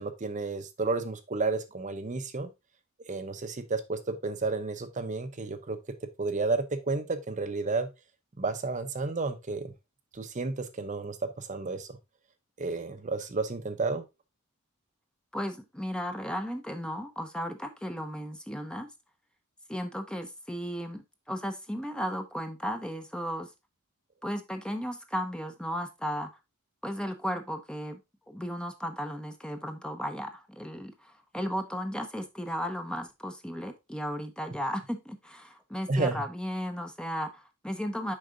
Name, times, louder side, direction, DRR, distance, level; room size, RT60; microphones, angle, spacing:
voice 1, 0.0-2.5 3.1-5.8 6.2-7.9 8.4-9.7 10.1-12.0 12.6-14.0 35.9-36.2, right 3 dB, 35° right, 9 dB, 0.7 m, -31 dB
voice 2, 15.3-18.9 19.7-23.5 24.2-26.3 26.8-28.0 28.3-38.1, equal, 5° left, 7 dB, 0.7 m, -35 dB
6.5 x 4.7 x 3.8 m, 0.24 s
head